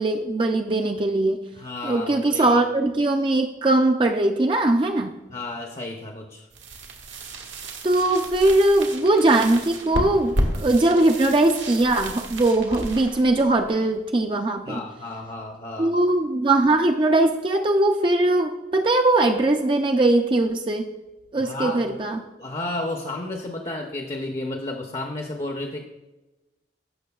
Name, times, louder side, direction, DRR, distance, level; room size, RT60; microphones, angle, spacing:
voice 1, 0.0-1.4 1.8-5.1 7.8-14.8 15.8-20.8 21.3-22.2, right 2 dB, 25° right, 5 dB, 0.4 m, -20 dB
voice 2, 1.5-2.6 5.3-6.5 14.7-16.0 21.3-22.0 22.4-25.8, left 2 dB, 35° left, 2 dB, 0.6 m, -32 dB
sound 1, 6.5-14.3, right 1 dB, 85° right, 1.4 m, -32 dB
15.0 x 6.2 x 2.3 m, 1.1 s
head